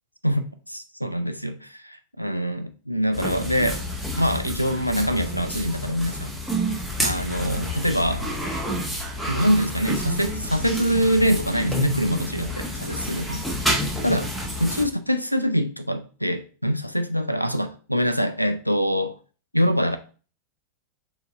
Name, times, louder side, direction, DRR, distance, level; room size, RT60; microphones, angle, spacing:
voice 1, 0.7-3.8 4.2-6.3 7.0-8.3 9.3-13.4 14.0-14.3 14.6-19.1 19.5-20.0, equal, 90° left, 0.4 m, -24 dB
sound 1, 3.1-14.9, equal, 5° left, 1.2 m, -29 dB
6.9 x 2.9 x 2.6 m
figure-of-eight pair, 90°, 0 cm